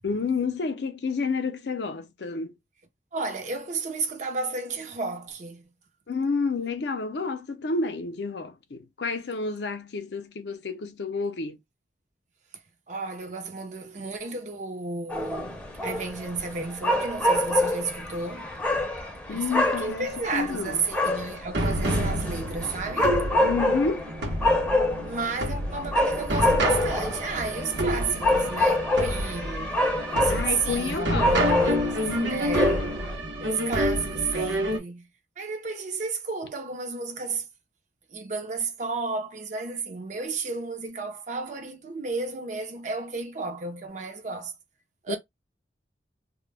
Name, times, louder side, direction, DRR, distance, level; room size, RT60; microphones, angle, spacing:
voice 1, 0.0-2.5 6.1-11.6 19.3-20.1 20.3-20.9 23.4-24.1 30.3-32.4 45.1-45.2, left 4 dB, 70° left, 0.5 m, -30 dB
voice 2, 3.1-5.7 12.9-18.5 19.3-23.2 25.0-29.8 30.1-31.9 32.3-32.8 33.4-35.1 35.4-37.5 38.1-44.5 45.0-45.2, right 4 dB, 45° right, 0.5 m, -32 dB
sound 1, 15.1-33.2, left 1 dB, 5° left, 0.6 m, -27 dB
sound 2, 21.5-34.8, equal, 80° right, 0.8 m, -29 dB
2.1 x 2.0 x 3.2 m
head